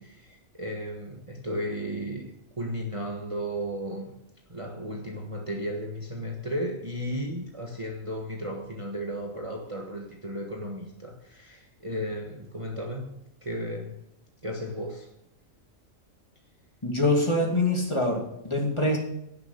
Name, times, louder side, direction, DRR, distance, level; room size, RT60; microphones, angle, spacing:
voice 1, 0.0-4.1 4.5-13.1 13.4-14.0 14.4-15.1, equal, 25° right, 1.4 m, -34 dB
voice 2, 16.8-19.0, left 1 dB, 20° left, 2.6 m, -24 dB
17.0 x 6.8 x 6.7 m
omnidirectional pair, 1.4 m